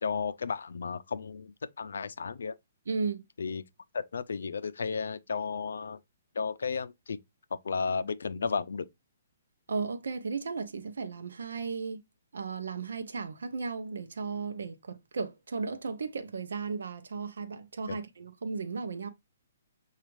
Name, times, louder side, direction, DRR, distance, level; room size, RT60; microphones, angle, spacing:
voice 1, 0.0-2.6 3.4-3.6 3.9-6.0 6.3-7.2 7.5-8.9 17.9-18.0, left 5 dB, 85° left, 0.4 m, -33 dB
voice 2, 2.9-3.2 9.7-12.0 12.3-19.1, right 4 dB, 85° right, 0.6 m, -35 dB
6.9 x 2.4 x 3.0 m
hypercardioid pair, 170°, 0 cm